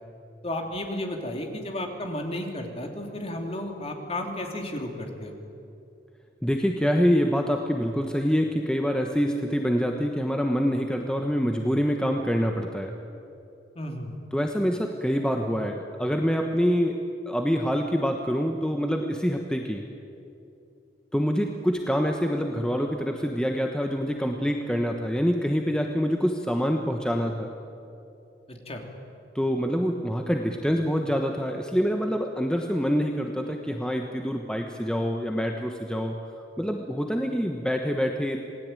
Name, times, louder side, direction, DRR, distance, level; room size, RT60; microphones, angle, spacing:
voice 1, 0.4-5.3 13.7-14.2 28.5-28.8, left 1 dB, 35° left, 3 dB, 3.3 m, -33 dB
voice 2, 6.4-12.9 14.3-17.0 17.3-19.8 21.1-27.5 29.3-36.2 36.6-38.4, equal, 5° left, 3 dB, 1.2 m, -26 dB
27.5 x 19.5 x 9.2 m, 2.8 s
head